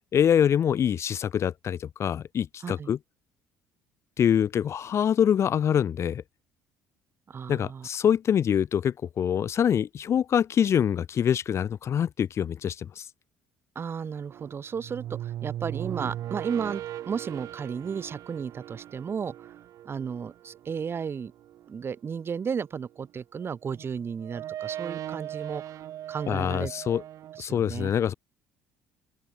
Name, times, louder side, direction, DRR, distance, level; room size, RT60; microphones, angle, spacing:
voice 1, 0.1-3.0 4.2-6.2 7.5-13.0 26.3-27.0 27.4-28.1, left 9 dB, 50° left, 0.7 m, -25 dB
voice 2, 7.3-7.9 13.8-19.5 19.9-21.3 21.7-25.8 26.1-26.7 27.4-27.9, right 6 dB, 40° right, 1.9 m, -34 dB
sound 1, 14.3-22.4 23.4-27.4, right 12 dB, 65° right, 1.6 m, -39 dB
open air
supercardioid pair, 70°, 6 cm